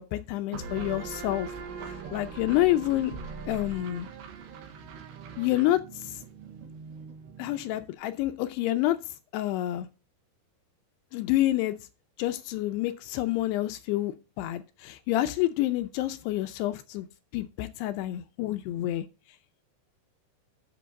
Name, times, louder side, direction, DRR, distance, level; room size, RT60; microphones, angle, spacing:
voice 1, 0.0-1.5 1.8-3.1 3.5-4.1 5.4-6.2 7.4-9.0 9.3-9.9 11.1-11.7 12.2-17.1 17.3-19.1, left 15 dB, 80° left, 2.6 m, -28 dB
sound 1, 0.5-7.9, right 5 dB, 80° right, 3.6 m, -41 dB
7.8 x 6.2 x 6.3 m
omnidirectional pair, 4.9 m